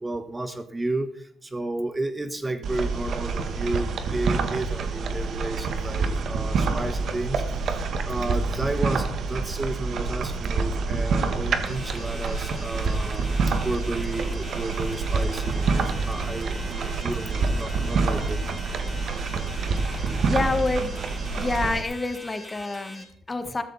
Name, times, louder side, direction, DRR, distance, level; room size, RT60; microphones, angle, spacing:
voice 1, 0.0-7.6 8.0-13.3 13.6-18.4, right 2 dB, 20° right, 10 dB, 1.3 m, -32 dB
sound 1, 2.6-21.8, right 4 dB, 60° right, 1.7 m, -27 dB
sound 2, 11.7-23.0, left 1 dB, 10° left, 7.0 m, -42 dB
voice 2, 19.8-21.0 21.4-23.6, left 2 dB, 25° left, 9 dB, 1.7 m, -28 dB
14.0 x 13.5 x 4.2 m, 0.65 s
cardioid pair, 90°, 0 cm